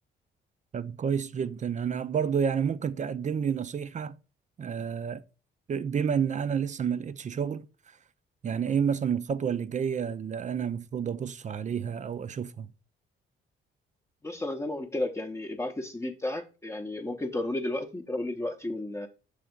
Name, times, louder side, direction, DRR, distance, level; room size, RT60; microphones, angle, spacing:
voice 1, 0.7-4.2 4.6-5.2 5.7-7.7 8.4-12.7, right 7 dB, 40° right, 0.4 m, -30 dB
voice 2, 14.2-19.1, left 1 dB, 15° left, 0.7 m, -33 dB
6.4 x 3.4 x 5.1 m
cardioid pair, 90°, 20 cm